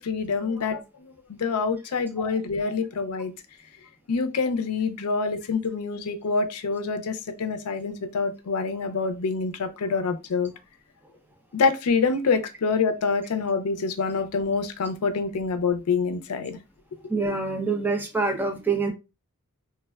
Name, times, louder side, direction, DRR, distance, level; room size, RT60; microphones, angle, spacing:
voice 1, 0.1-0.8 1.3-3.3 4.1-10.5 11.5-16.6, left 4 dB, 85° left, 0.5 m, -26 dB
voice 2, 17.1-18.9, right 4 dB, 10° right, 0.6 m, -25 dB
3.3 x 2.1 x 2.2 m
head